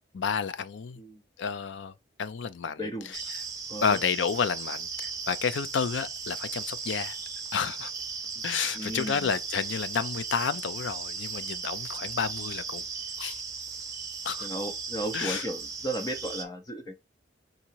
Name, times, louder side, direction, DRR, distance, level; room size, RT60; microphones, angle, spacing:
voice 1, 0.1-1.0 1.4-1.9 2.2-3.2 3.8-7.2 7.5-7.9 8.4-12.8 13.2-13.4 14.2-14.5 15.1-15.5, left 6 dB, 80° left, 0.5 m, -30 dB
voice 2, 2.8-3.1 3.7-4.0 8.7-9.3 14.4-17.0, right 1 dB, 20° left, 0.6 m, -35 dB
sound 1, 3.1-16.4, right 5 dB, 20° right, 0.7 m, -37 dB
3.8 x 2.8 x 4.5 m
head